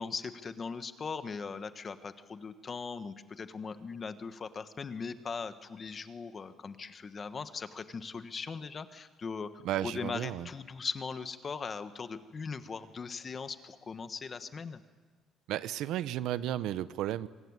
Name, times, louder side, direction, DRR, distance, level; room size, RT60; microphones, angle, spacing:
voice 1, 0.0-14.8, left 5 dB, 25° left, 11 dB, 1.3 m, -39 dB
voice 2, 9.6-10.5 15.5-17.3, right 12 dB, 75° right, 15 dB, 0.8 m, -33 dB
25.0 x 22.5 x 9.7 m, 1.4 s
cardioid pair, 155°, 0 cm